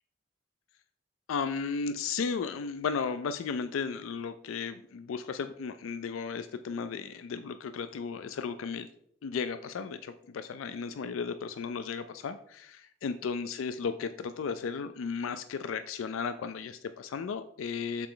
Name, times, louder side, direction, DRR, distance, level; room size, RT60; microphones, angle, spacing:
voice 1, 1.3-8.9 9.2-18.1, left 5 dB, 90° left, 11 dB, 0.4 m, -35 dB
6.9 x 4.3 x 3.8 m, 0.68 s
head